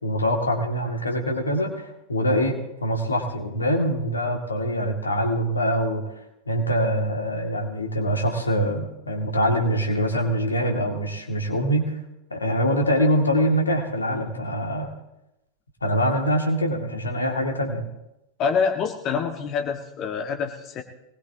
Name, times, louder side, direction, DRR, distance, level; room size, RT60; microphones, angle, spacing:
voice 1, 0.0-6.0 6.5-11.9 12.3-14.9 15.8-17.8, equal, 80° left, 2 dB, 2.3 m, -24 dB
voice 2, 18.4-20.8, left 6 dB, 35° left, 4 dB, 1.6 m, -26 dB
22.5 x 19.5 x 2.9 m, 0.91 s
figure-of-eight pair, 90°, 0 cm